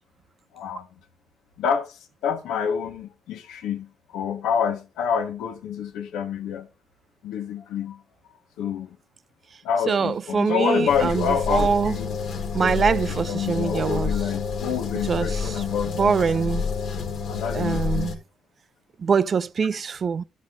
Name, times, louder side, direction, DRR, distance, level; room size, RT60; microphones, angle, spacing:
voice 1, 0.5-0.9 1.6-6.7 7.2-8.0 8.6-9.0 9.6-12.2 12.6-16.1 17.3-18.1, left 7 dB, 85° left, 1.3 m, -28 dB
voice 2, 9.9-12.0 12.5-14.1 15.1-15.3 16.0-16.6 17.5-18.2 19.0-20.2, right 6 dB, 45° right, 0.4 m, -23 dB
sound 1, 10.9-18.1, left 5 dB, 70° left, 1.5 m, -29 dB
13.0 x 6.1 x 3.8 m
cardioid pair, 90°, 0 cm